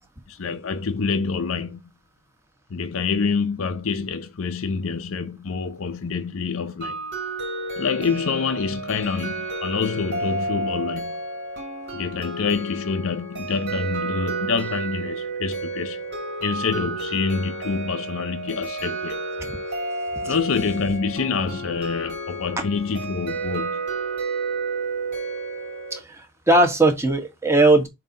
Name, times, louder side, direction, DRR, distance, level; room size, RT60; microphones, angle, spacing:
voice 1, 0.3-1.8 2.7-7.0 7.8-11.2 11.9-16.0 16.4-19.2 20.2-23.8, left 5 dB, 65° left, 0.6 m, -26 dB
sound 1, 6.8-26.0, right 3 dB, 55° right, 2.3 m, -31 dB
voice 2, 25.9-27.9, right 2 dB, 15° right, 1.4 m, -19 dB
7.4 x 2.8 x 5.3 m
head